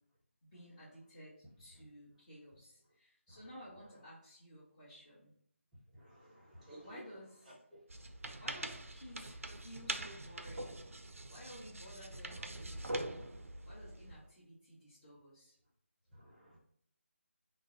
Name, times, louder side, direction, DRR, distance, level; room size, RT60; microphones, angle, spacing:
voice 1, 0.4-5.3 6.8-7.5 8.4-10.8 11.2-15.6, equal, 30° left, -11 dB, 1.0 m, -54 dB
voice 2, 5.9-7.0 7.7-7.8 16.1-16.6, right 1 dB, ahead, -6 dB, 0.7 m, -55 dB
sound 1, 7.9-14.2, right 1 dB, 85° right, 0.4 m, -44 dB
2.6 x 2.0 x 3.7 m, 0.67 s
figure-of-eight pair, 160°, 7 cm